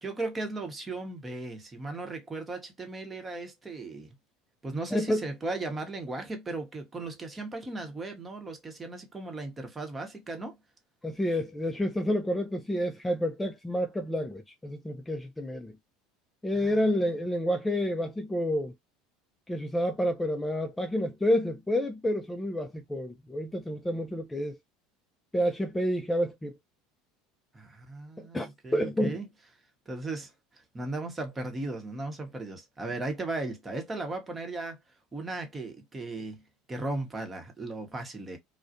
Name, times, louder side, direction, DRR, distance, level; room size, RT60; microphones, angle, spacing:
voice 1, 0.0-4.1 4.6-10.6 16.6-16.8 27.5-29.3 29.9-30.3 30.7-34.8 35.1-36.4 36.7-38.4, right 2 dB, 20° right, 0.9 m, -36 dB
voice 2, 4.9-5.2 11.0-15.7 16.4-18.7 19.5-24.6 25.3-26.6 28.2-29.2, equal, 10° left, 0.4 m, -29 dB
2.3 x 2.1 x 2.6 m
hypercardioid pair, 75°, 0 cm